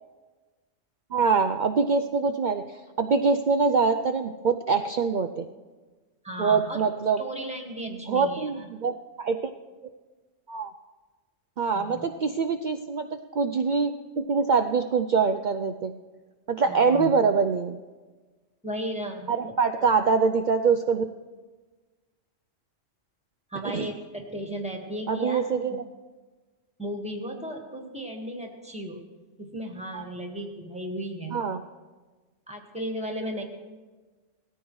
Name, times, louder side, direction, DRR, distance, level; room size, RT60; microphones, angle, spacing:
voice 1, 1.1-5.5 6.4-7.2 7.9-9.4 10.5-10.7 11.6-15.9 16.5-17.8 19.3-21.1 23.6-23.9 25.1-25.8 29.9-30.0 31.3-31.6, right 5 dB, 70° right, 7 dB, 0.4 m, -24 dB
voice 2, 6.2-6.8 7.2-8.7 11.7-12.1 16.6-17.1 18.6-19.5 19.8-19.9 23.5-25.8 26.8-29.0 29.4-31.6 32.5-33.4, right 1 dB, 5° right, 2 dB, 1.5 m, -35 dB
19.0 x 13.5 x 3.1 m, 1.3 s
omnidirectional pair, 1.3 m